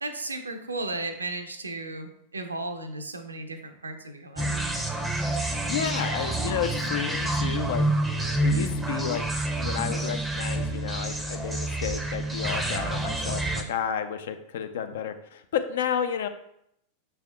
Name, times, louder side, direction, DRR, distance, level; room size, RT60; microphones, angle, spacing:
voice 1, 0.0-4.6, right 2 dB, 75° right, 7 dB, 0.4 m, -35 dB
sound 1, 4.4-13.6, right 2 dB, 5° right, 0.5 m, -28 dB
voice 2, 5.3-7.8 8.2-9.2 9.6-16.3, left 8 dB, 60° left, 8 dB, 0.4 m, -31 dB
5.9 x 3.4 x 2.2 m, 0.74 s
figure-of-eight pair, 90°, 0 cm